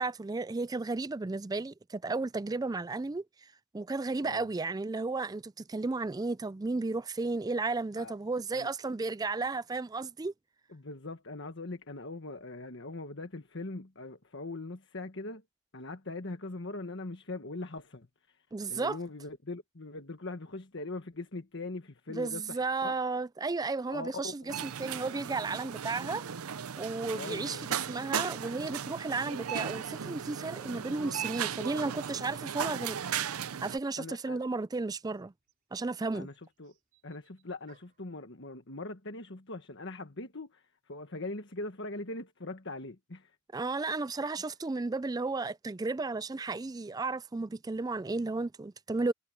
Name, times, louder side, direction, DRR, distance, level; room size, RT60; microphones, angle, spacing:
voice 1, 0.0-3.2 3.7-10.3 18.5-19.0 22.1-26.2 26.8-27.6 27.9-33.0 33.6-35.3 35.7-36.3 43.5-49.1, right 3 dB, 15° right, 0.3 m, -33 dB
voice 2, 10.7-15.4 15.7-23.0 23.9-24.6 27.1-27.7 34.0-34.4 36.1-36.7 37.0-43.4, left 2 dB, 55° left, 1.5 m, -41 dB
sound 1, 24.5-33.8, right 8 dB, 80° right, 0.6 m, -36 dB
sound 2, 33.8-34.2 35.2-35.3 35.5-38.1, right 6 dB, 40° right, 5.0 m, -63 dB
head